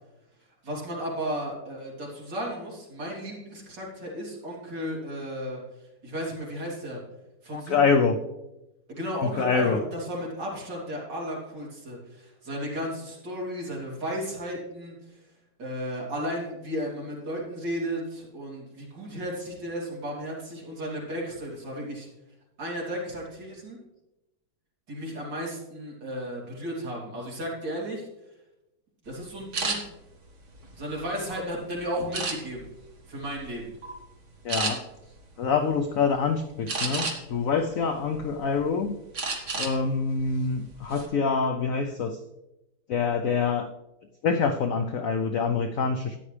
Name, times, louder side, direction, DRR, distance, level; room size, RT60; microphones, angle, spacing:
voice 1, 0.6-5.6 6.0-7.0 7.4-8.0 8.9-15.2 15.6-22.1 22.6-23.8 24.9-28.1 29.1-29.8 30.8-32.7 33.1-33.6, equal, 60° right, -4 dB, 3.8 m, -34 dB
voice 2, 7.5-8.2 9.2-9.8 34.4-34.8 35.4-39.0 39.6-42.2 42.9-43.7 44.2-46.2, left 5 dB, 80° left, 7 dB, 0.7 m, -25 dB
sound 1, 29.5-29.8 30.4-31.4 32.1-32.7 33.2-33.5 33.8-34.0 34.5-34.7 36.7-37.4 37.9-38.6 39.1-39.8 40.1-40.3 40.7-41.1, right 3 dB, 40° right, 1.8 m, -30 dB
13.0 x 9.8 x 3.3 m, 0.96 s
omnidirectional pair, 2.2 m